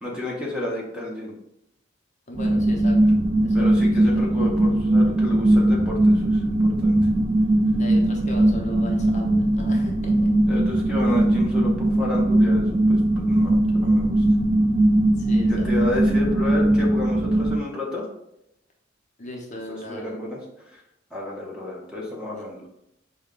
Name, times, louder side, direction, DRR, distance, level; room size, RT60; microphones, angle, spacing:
voice 1, 0.0-1.4 3.5-7.0 10.5-14.2 15.5-18.0 19.7-20.4 20.7-20.8 21.1-22.6, left 1 dB, 5° right, -3 dB, 0.7 m, -31 dB
voice 2, 2.3-3.7 4.2-4.3 7.8-10.3 15.2-15.7 19.2-20.1 22.3-22.4, left 1 dB, 35° left, 0 dB, 0.6 m, -37 dB
sound 1, 2.3-17.6, right 1 dB, 25° right, 0.3 m, -20 dB
4.5 x 2.2 x 3.7 m, 0.80 s
head